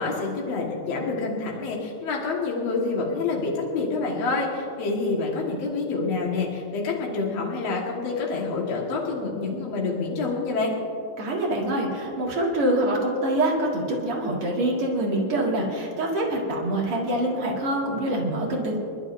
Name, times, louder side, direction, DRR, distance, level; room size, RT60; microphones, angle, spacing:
voice 1, 0.0-10.7, left 3 dB, 60° left, -3 dB, 1.8 m, -27 dB
voice 2, 11.2-18.8, right 1 dB, 55° right, -3 dB, 1.6 m, -25 dB
29.5 x 12.0 x 2.6 m, 2.6 s
omnidirectional pair, 5.3 m